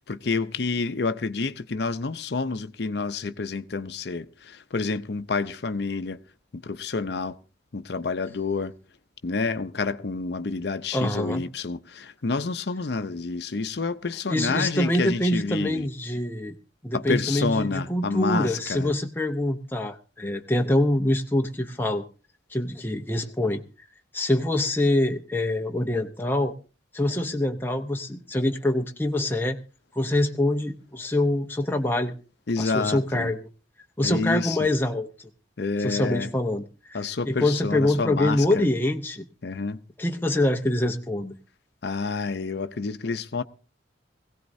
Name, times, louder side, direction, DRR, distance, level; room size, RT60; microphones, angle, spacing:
voice 1, 0.0-6.2 6.5-7.4 7.7-8.7 9.2-15.9 16.9-18.9 32.5-33.3 34.0-34.6 35.6-36.3 36.9-38.6 39.4-39.8 41.8-43.4, left 4 dB, 60° left, 0.6 m, -28 dB
voice 2, 10.9-11.4 14.3-16.6 16.8-22.0 22.5-23.6 24.1-26.5 26.9-29.6 29.9-32.1 32.6-33.5 34.0-35.3 35.8-36.6 36.9-39.2 40.0-41.3, left 1 dB, 10° left, 0.7 m, -25 dB
21.0 x 16.5 x 2.7 m
head